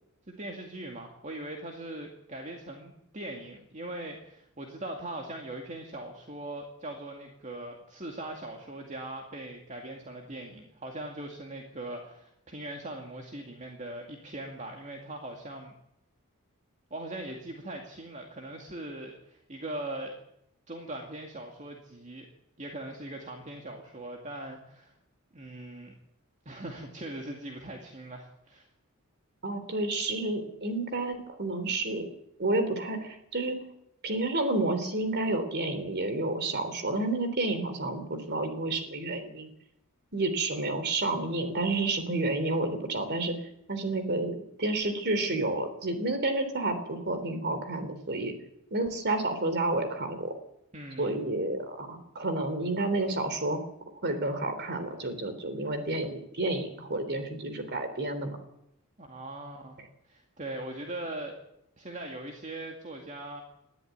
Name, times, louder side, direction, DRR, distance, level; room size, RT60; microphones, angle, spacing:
voice 1, 0.3-15.7 16.9-20.2 20.7-22.3 22.6-24.9 25.3-25.9 26.5-28.7 50.7-51.2 59.0-59.8 60.1-61.3 61.8-63.4, right 1 dB, 35° right, 2 dB, 2.3 m, -40 dB
voice 2, 29.4-32.1 32.4-33.6 34.0-39.5 40.1-43.4 43.7-48.3 48.7-50.3 51.0-53.6 54.0-58.4, right 2 dB, 50° right, 9 dB, 3.5 m, -30 dB
20.5 x 14.0 x 9.4 m, 0.80 s
head